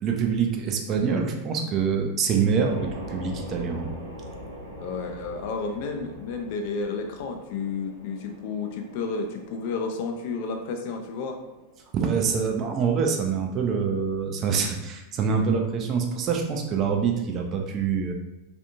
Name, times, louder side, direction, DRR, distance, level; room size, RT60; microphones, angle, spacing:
voice 1, 0.0-3.9 11.9-18.1, right 6 dB, 30° right, 3 dB, 0.4 m, -25 dB
sound 1, 2.7-14.6, equal, 70° right, 0.9 m, -44 dB
voice 2, 4.8-11.4, left 4 dB, 50° left, 4 dB, 0.4 m, -31 dB
3.3 x 2.6 x 2.6 m, 1.0 s
figure-of-eight pair, 90°, 0 cm